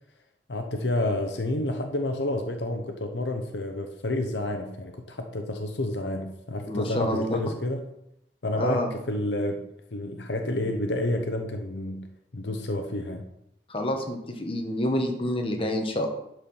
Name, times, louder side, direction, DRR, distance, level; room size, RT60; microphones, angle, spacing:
voice 1, 0.5-7.9 8.4-9.6 9.9-12.1 12.3-13.3, left 1 dB, 80° left, 5 dB, 1.0 m, -29 dB
voice 2, 6.7-7.3 8.6-8.9 13.7-16.1, equal, 35° left, 3 dB, 1.4 m, -28 dB
11.5 x 4.7 x 5.5 m, 0.80 s
head